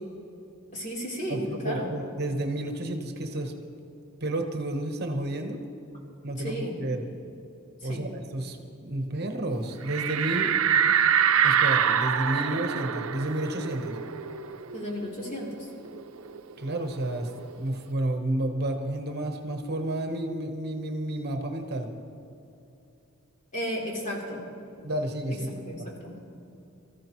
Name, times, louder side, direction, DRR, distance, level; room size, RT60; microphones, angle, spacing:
voice 1, 0.7-1.9 6.4-6.9 7.8-8.1 14.7-15.7 23.5-24.5 25.5-26.2, equal, 40° left, -4 dB, 3.6 m, -34 dB
voice 2, 1.3-3.5 3.8-3.9 4.2-5.6 6.2-7.1 7.8-10.5 11.4-14.0 16.6-17.3 17.6-21.9 24.8-25.5, right 1 dB, 50° right, 4 dB, 1.1 m, -31 dB
sound 1, 9.9-15.1 15.4-15.5 15.8-17.5, right 8 dB, 80° right, 0.6 m, -25 dB
24.0 x 14.5 x 3.1 m, 2.8 s
head